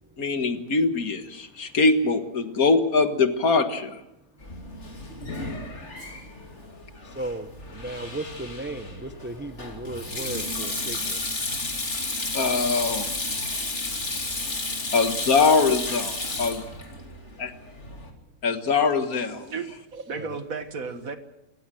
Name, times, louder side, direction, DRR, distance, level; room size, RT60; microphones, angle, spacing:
voice 1, 0.2-4.0 12.3-13.1 14.9-16.6 17.4-17.5 18.4-19.5, left 4 dB, 65° left, 8 dB, 2.0 m, -22 dB
Sink (filling or washing), 4.4-18.1, left 2 dB, 45° left, 3.2 m, -32 dB
voice 2, 7.1-11.2 20.2-20.3, right 2 dB, 10° right, 7 dB, 0.7 m, -36 dB
voice 3, 19.4-21.2, right 5 dB, 60° right, 9 dB, 1.9 m, -34 dB
28.0 x 15.5 x 7.7 m, 0.91 s
omnidirectional pair, 1.7 m